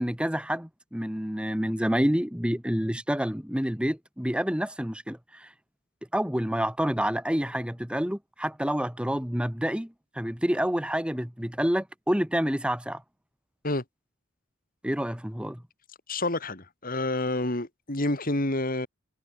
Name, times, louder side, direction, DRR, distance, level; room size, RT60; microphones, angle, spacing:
voice 1, 0.0-5.5 6.1-13.0 14.8-15.6, equal, 5° right, 1.7 m, -28 dB
voice 2, 16.1-18.9, left 2 dB, 45° left, 2.8 m, -28 dB
head